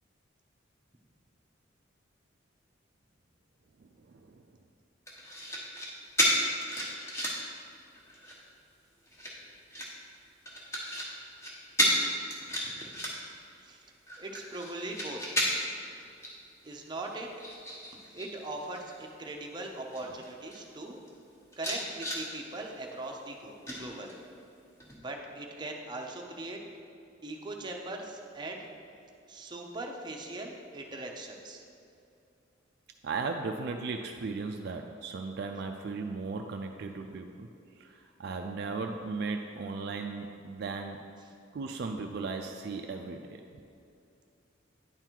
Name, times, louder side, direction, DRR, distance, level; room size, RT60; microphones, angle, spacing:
sound 1, 5.1-5.9 6.2-7.5 7.9-8.4 9.1-9.9 10.5-11.1 11.4-11.5 11.8-12.0 12.3-13.4 13.8-15.8 16.2-16.4 16.7-18.3 18.6-19.0 19.6-19.7 19.9-20.6 21.1-21.2 21.5-22.2 23.7-24.4 24.8-24.9, equal, 15° left, 1.1 m, -32 dB
voice 1, 12.5-12.9 13.6-13.8 14.2-15.2 16.6-17.3 18.1-21.0 21.6-24.2 24.9-26.6 27.2-28.7 29.3-31.6 41.2-41.3, right 2 dB, 25° right, 1 dB, 0.6 m, -40 dB
voice 2, 33.0-37.5 38.2-41.0 41.5-43.4, right 4 dB, 55° right, 4 dB, 0.3 m, -36 dB
9.8 x 3.8 x 4.5 m, 2.6 s
head